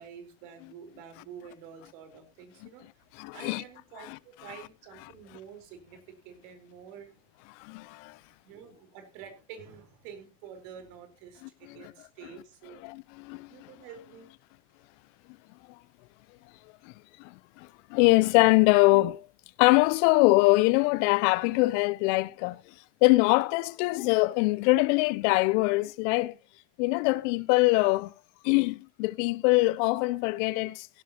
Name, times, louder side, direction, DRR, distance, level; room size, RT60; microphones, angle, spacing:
voice 1, 0.0-2.8 3.3-7.2 8.4-12.8 13.5-14.3, right 7 dB, 65° right, 4.4 m, -48 dB
voice 2, 3.2-3.6 7.6-8.2 12.8-13.5 17.2-19.2 19.6-22.6 23.0-26.3 26.8-28.1 28.4-30.9, left 22 dB, 65° left, 0.7 m, -23 dB
16.5 x 11.5 x 2.9 m
hypercardioid pair, 90°, 39 cm